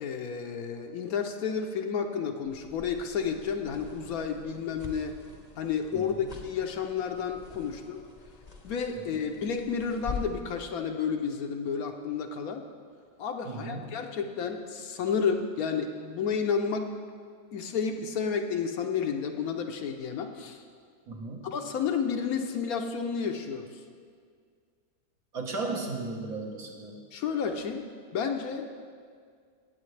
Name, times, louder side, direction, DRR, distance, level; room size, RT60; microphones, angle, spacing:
voice 1, 0.0-5.2 5.6-8.0 8.6-12.6 13.2-16.9 17.5-20.6 21.5-23.7 27.1-28.7, left 6 dB, 70° left, 5 dB, 1.1 m, -31 dB
sound 1, 2.4-10.5, left 4 dB, 35° left, 0.8 m, -44 dB
voice 2, 5.9-6.4 8.9-9.3 13.4-14.0 21.1-21.6 25.3-27.0, right 3 dB, 60° right, 0 dB, 1.7 m, -36 dB
17.5 x 8.0 x 3.2 m, 2.1 s
omnidirectional pair, 1.7 m